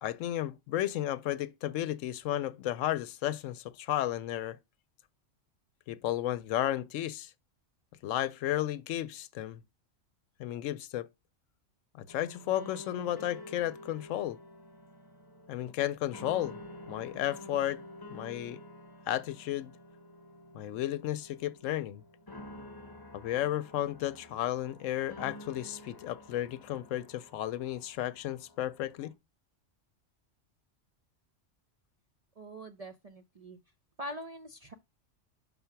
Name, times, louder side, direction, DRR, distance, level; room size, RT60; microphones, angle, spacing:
voice 1, 0.0-4.6 5.9-7.3 8.0-9.6 10.4-11.1 11.9-14.4 15.5-16.6 16.9-17.8 18.1-18.6 19.1-19.7 20.5-22.0 23.1-29.1, left 13 dB, 90° left, 0.9 m, -33 dB
sound 1, 12.1-29.1, left 1 dB, 20° left, 0.7 m, -49 dB
voice 2, 32.4-33.6 34.0-34.7, equal, 55° right, 0.4 m, -43 dB
5.7 x 3.9 x 5.7 m
omnidirectional pair, 1.3 m